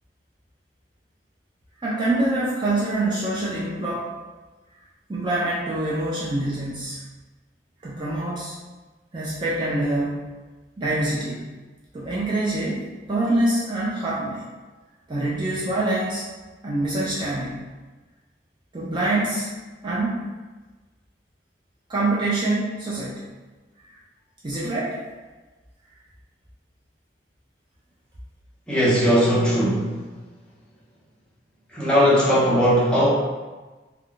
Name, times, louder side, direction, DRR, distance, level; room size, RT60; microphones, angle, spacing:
voice 1, 1.8-4.1 5.1-7.0 7.8-8.6 9.1-10.2 10.8-11.5 11.9-14.5 15.1-16.2 16.6-17.7 18.7-19.5 19.8-20.2 21.9-23.3 24.4-25.0, right 2 dB, 25° right, -7 dB, 0.5 m, -25 dB
voice 2, 28.7-29.9 31.7-33.1, equal, 5° left, -8 dB, 0.8 m, -18 dB
2.3 x 2.2 x 3.7 m, 1.3 s
head